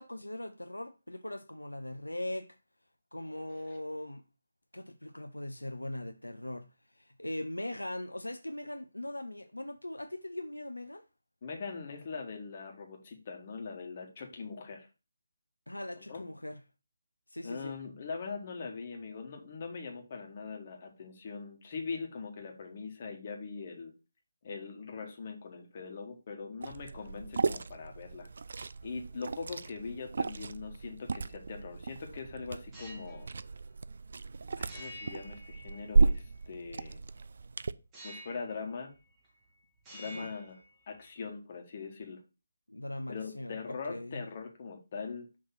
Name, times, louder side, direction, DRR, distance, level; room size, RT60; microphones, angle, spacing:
voice 1, 0.0-2.6 3.1-4.2 4.7-6.7 7.0-11.0 15.7-16.6 17.3-17.7 40.0-40.3 42.7-44.2, left 1 dB, 80° left, 0.5 m, -40 dB
voice 2, 11.4-14.9 16.0-16.2 17.4-23.9 24.4-28.3 28.8-33.3 34.6-37.0 38.0-38.9 39.9-40.6 40.9-42.2 43.1-45.3, left 4 dB, 35° left, 1.3 m, -41 dB
Liquid, 26.6-37.7, right 4 dB, 50° right, 0.3 m, -34 dB
sound 1, 32.7-33.2 34.7-36.2 37.9-38.6 38.9-39.5 39.8-41.2, equal, 15° right, 1.3 m, -49 dB
5.9 x 3.1 x 5.7 m
figure-of-eight pair, 150°, 0 cm